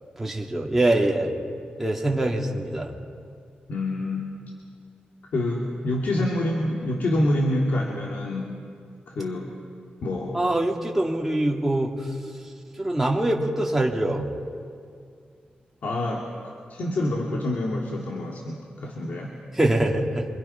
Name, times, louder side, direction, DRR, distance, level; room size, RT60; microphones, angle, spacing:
voice 1, 0.2-1.3 1.8-2.9 10.3-11.9 12.8-14.3 19.5-20.3, right 1 dB, 5° right, -1 dB, 2.3 m, -23 dB
voice 2, 3.7-4.4 5.3-8.6 9.1-9.5 10.0-10.4 15.8-16.3 16.7-19.3, left 1 dB, 65° left, -2 dB, 2.4 m, -27 dB
26.0 x 25.0 x 5.7 m, 2.3 s
wide cardioid pair, 170°, 3 cm